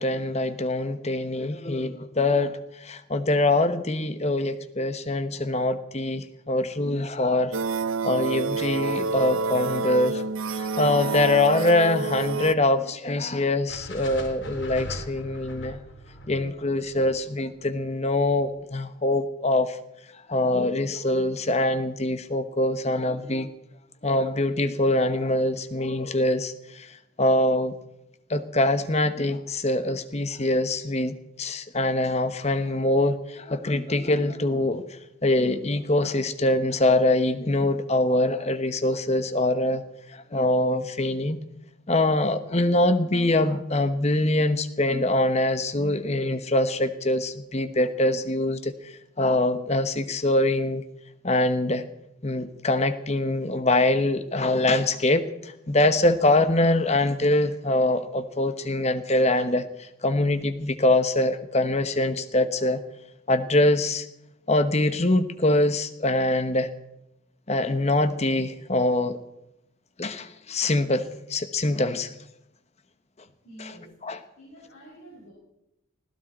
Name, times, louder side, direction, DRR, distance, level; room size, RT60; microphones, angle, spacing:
voice 1, 0.0-7.5 8.0-10.3 10.6-15.8 16.3-19.8 20.3-23.5 24.0-26.9 27.2-27.7 28.3-34.8 35.2-39.8 40.1-41.4 41.9-48.7 49.2-50.8 51.2-51.8 52.2-59.7 60.0-62.8 63.3-64.1 64.5-66.7 67.5-69.2 70.0-71.0 71.3-72.1 74.0-74.2, left 2 dB, 35° left, 11 dB, 1.0 m, -24 dB
sound 1, 7.5-12.5, right 4 dB, 85° right, 0.7 m, -28 dB
sound 2, 13.7-17.9, left 1 dB, 60° left, 2.8 m, -40 dB
voice 2, 73.4-74.0 74.4-75.3, right 1 dB, 85° left, -4 dB, 5.9 m, -47 dB
20.0 x 16.5 x 4.3 m, 0.86 s
head